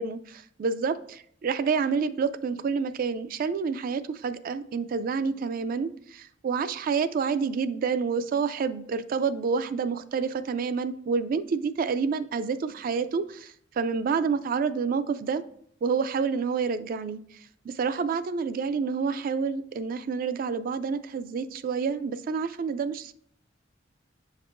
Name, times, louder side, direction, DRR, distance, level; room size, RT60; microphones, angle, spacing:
voice 1, 0.0-15.4 15.8-17.2 17.6-23.1, right 5 dB, 50° right, 12 dB, 0.3 m, -28 dB
7.5 x 5.3 x 2.5 m, 0.65 s
head